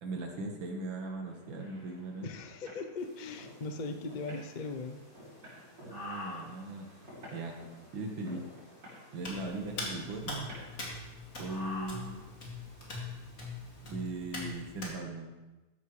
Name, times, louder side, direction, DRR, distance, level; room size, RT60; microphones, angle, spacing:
voice 1, 0.0-2.3 5.8-6.9 7.3-7.6 7.9-8.4 9.1-10.5 11.4-12.2 13.8-15.3, right 2 dB, 85° right, 2 dB, 2.3 m, -39 dB
sound 1, 1.2-10.8, equal, 65° right, 5.0 m, -53 dB
voice 2, 2.2-5.0, left 3 dB, 80° left, 6 dB, 0.4 m, -39 dB
sound 2, 3.0-13.9, left 2 dB, 25° left, 2.8 m, -50 dB
Hands, 9.2-14.9, left 2 dB, 45° left, 2.8 m, -42 dB
13.5 x 11.0 x 3.2 m, 1.1 s
omnidirectional pair, 2.1 m